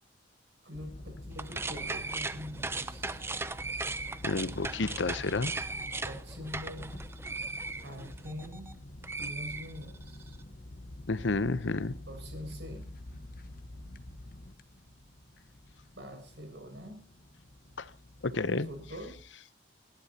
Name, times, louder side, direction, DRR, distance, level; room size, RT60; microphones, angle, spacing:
voice 1, 0.6-3.2 6.0-6.9 7.8-8.7 9.2-10.4 12.1-12.9 15.9-17.0 18.3-19.2, equal, 65° right, 2 dB, 6.6 m, -44 dB
sound 1, 0.7-19.2, left 1 dB, 45° left, 1.2 m, -47 dB
sound 2, 1.3-8.7 9.0-10.2, right 3 dB, 15° right, 0.6 m, -38 dB
voice 2, 4.2-5.5 11.1-12.0 17.8-17.9 18.2-18.7, left 3 dB, 75° left, 15 dB, 0.8 m, -30 dB
29.0 x 11.5 x 2.9 m, 0.40 s
head